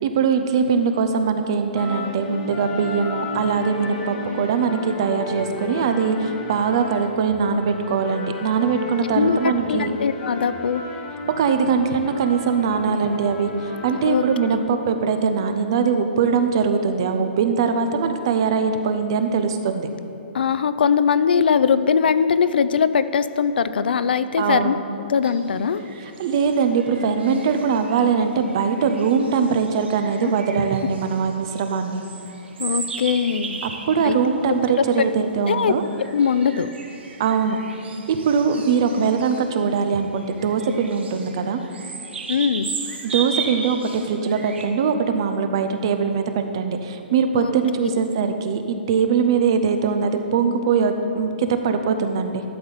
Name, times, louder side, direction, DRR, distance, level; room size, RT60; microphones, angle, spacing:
voice 1, 0.0-9.9 11.4-13.5 13.8-19.9 24.4-24.7 26.2-32.0 33.6-35.8 37.2-37.6 38.1-41.6 43.0-52.4, right 6 dB, 25° right, 8 dB, 0.4 m, -21 dB
sound 1, 1.7-14.5, left 3 dB, 15° left, 0.8 m, -34 dB
voice 2, 9.0-9.4 9.7-10.8 14.1-14.2 20.3-24.8 25.1-25.8 32.6-33.6 34.0-34.2 35.5-35.7 36.1-36.7 42.3-42.7 47.4-47.5 47.8-47.9, left 6 dB, 60° left, 13 dB, 0.4 m, -20 dB
sound 2, 25.2-44.7, right 5 dB, 80° right, 1.2 m, -36 dB
12.0 x 4.0 x 6.8 m, 2.8 s
hypercardioid pair, 180°, 6 cm